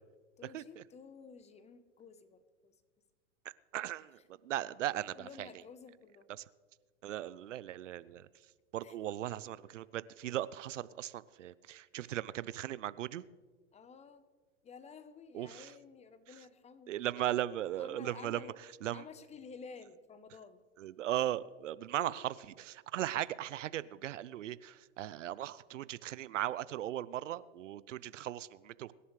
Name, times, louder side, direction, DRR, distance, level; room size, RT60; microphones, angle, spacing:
voice 1, 0.4-2.7 5.1-6.3 8.8-8.9 13.7-14.2 14.6-17.0 17.8-18.6 18.9-20.6 22.0-22.1, left 5 dB, 20° left, 13 dB, 0.8 m, -52 dB
voice 2, 3.7-5.5 7.0-8.3 8.7-13.2 15.3-15.7 16.9-18.4 18.8-19.0 20.8-28.9, right 12 dB, 80° right, 19 dB, 0.6 m, -38 dB
23.5 x 11.0 x 3.2 m, 1.5 s
hypercardioid pair, 110°, 36 cm